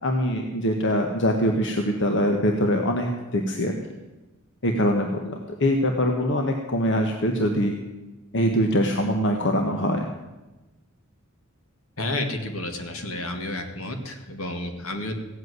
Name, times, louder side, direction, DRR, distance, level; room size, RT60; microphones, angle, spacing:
voice 1, 0.0-3.8 4.6-7.8 8.3-10.1, equal, 60° left, 3 dB, 1.3 m, -23 dB
voice 2, 12.0-15.1, left 1 dB, 75° left, 5 dB, 2.2 m, -31 dB
16.0 x 8.1 x 9.5 m, 1.1 s
head